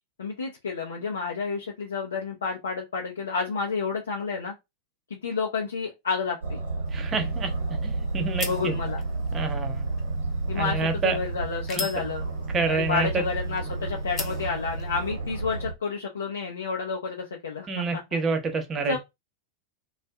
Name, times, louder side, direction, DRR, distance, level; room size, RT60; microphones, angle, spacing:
voice 1, 0.2-4.5 5.1-6.6 8.5-9.0 10.5-12.2 12.7-18.2 18.8-19.0, left 5 dB, 70° left, 0.5 m, -30 dB
Aircraft, 6.4-15.7, right 3 dB, 75° right, 0.8 m, -31 dB
sound 1, 6.8-15.1, left 4 dB, 30° left, 0.6 m, -42 dB
voice 2, 6.9-8.7 9.3-9.9 10.5-11.2 11.8-11.9 12.5-13.2 17.7-19.0, right 4 dB, 20° right, 0.7 m, -28 dB
2.5 x 2.3 x 2.2 m
figure-of-eight pair, 90°, 0 cm